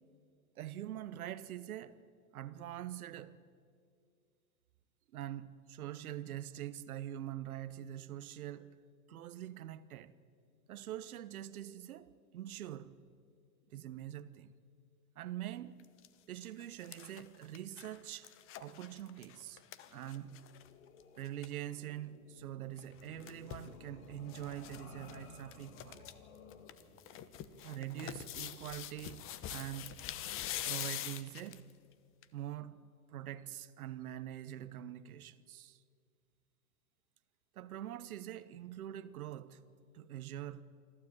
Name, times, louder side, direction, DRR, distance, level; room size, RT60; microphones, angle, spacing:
voice 1, 0.6-2.0 2.3-3.4 5.1-8.8 9.1-10.1 10.7-13.0 13.7-14.5 15.2-15.9 16.3-18.3 18.6-19.6 19.9-20.5 21.2-26.1 27.6-30.0 30.6-31.6 32.3-35.8 37.5-39.6 39.9-40.6, right 12 dB, 70° right, 1.2 m, -44 dB
sound 1, 15.8-16.1 16.5-20.7 21.0-21.1 21.3-21.5 22.8-23.7 24.3-24.8 25.1-25.2 25.5-26.1 26.5-31.7 32.2-32.3, left 12 dB, 30° left, 1.0 m, -44 dB
sound 2, 19.9-28.8, left 5 dB, 70° left, 2.9 m, -57 dB
27.5 x 12.5 x 8.8 m
hypercardioid pair, 120°, 45 cm